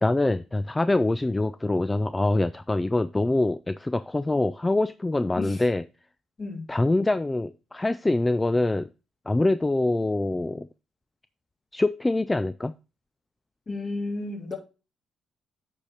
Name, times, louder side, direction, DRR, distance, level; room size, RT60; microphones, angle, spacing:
voice 1, 0.0-5.8 6.7-8.9 9.3-10.7 11.7-12.8, left 2 dB, 15° left, 0.3 m, -24 dB
voice 2, 6.4-6.7 13.7-14.6, left 2 dB, 40° left, 3.0 m, -32 dB
8.5 x 5.0 x 4.2 m
cardioid pair, 90°, 0 cm